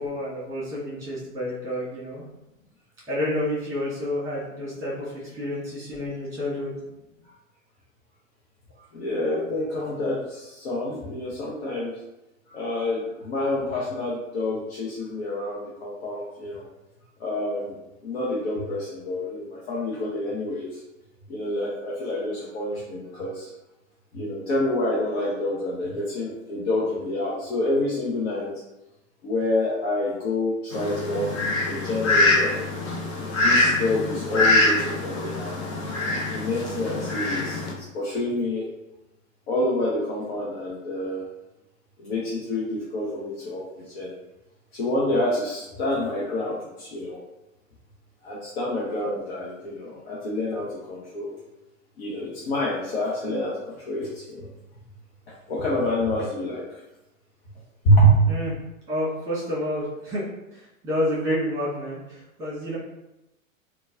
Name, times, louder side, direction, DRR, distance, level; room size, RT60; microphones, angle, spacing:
voice 1, 0.0-2.2 3.1-6.7 58.3-58.5 58.9-62.8, left 1 dB, 10° right, -8 dB, 1.5 m, -29 dB
voice 2, 8.9-12.0 12.5-16.6 17.2-17.8 18.0-20.8 21.3-23.5 24.1-28.5 29.2-31.3 31.7-32.5 33.4-35.7 36.3-38.7 39.5-41.2 42.0-44.1 44.7-47.2 48.2-51.3 52.0-54.5 55.5-56.8 57.8-58.2, left 1 dB, 50° left, -6 dB, 0.8 m, -27 dB
Fowl, 30.7-37.7, left 2 dB, 25° left, 0.4 m, -24 dB
3.9 x 2.3 x 2.4 m, 0.93 s
figure-of-eight pair, 100°, 41 cm